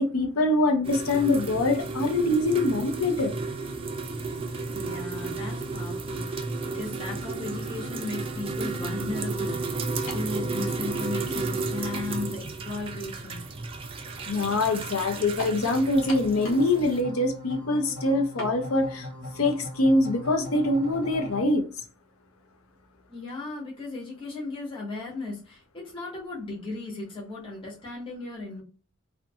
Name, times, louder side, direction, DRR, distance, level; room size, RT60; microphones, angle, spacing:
voice 1, 0.0-3.3 14.3-19.1 19.4-21.7, left 2 dB, 85° left, 0.6 m, -24 dB
sound 1, 0.8-17.0, right 3 dB, 25° right, 0.3 m, -33 dB
voice 2, 4.7-9.6 10.1-13.4 23.1-28.6, left 2 dB, 25° left, 0.9 m, -36 dB
sound 2, 10.1-10.4 11.2-11.3 15.4-15.6 16.1-16.7 17.0-17.1 18.4-18.6, left 1 dB, 65° left, 1.0 m, -38 dB
sound 3, 16.0-21.4, left 1 dB, 50° left, 1.2 m, -40 dB
2.6 x 2.2 x 2.6 m
head